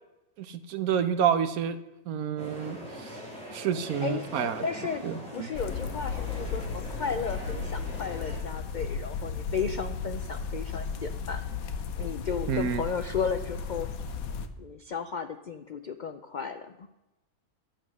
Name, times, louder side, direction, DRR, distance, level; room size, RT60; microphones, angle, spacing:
voice 1, 0.4-1.8 2.1-3.1 3.5-4.5 5.0-5.5 12.5-12.9, right 8 dB, 90° right, 11 dB, 1.2 m, -29 dB
sound 1, 2.4-8.4, equal, 5° left, 3.3 m, -42 dB
voice 2, 4.6-11.4 12.0-13.9 14.6-16.9, left 6 dB, 65° left, 9 dB, 0.4 m, -34 dB
sound 2, 5.5-14.5, left 5 dB, 80° left, 1.3 m, -35 dB
11.5 x 9.0 x 6.2 m, 0.96 s
omnidirectional pair, 1.5 m